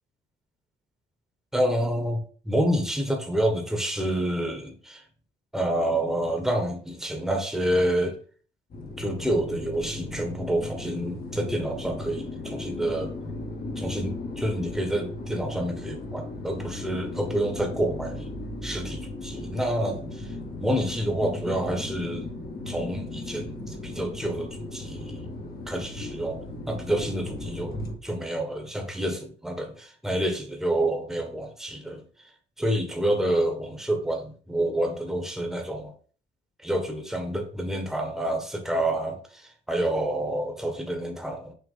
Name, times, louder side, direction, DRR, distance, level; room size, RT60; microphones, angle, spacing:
voice 1, 1.5-5.0 5.5-8.2 9.0-13.1 13.7-18.3 18.6-22.3 22.7-25.2 25.7-32.0 32.6-35.9 36.6-41.5, right 1 dB, ahead, 1.4 m, -28 dB
sound 1, 8.7-28.0, left 2 dB, 50° left, 1.8 m, -36 dB
6.3 x 3.4 x 5.6 m
cardioid pair, 90°, 20 cm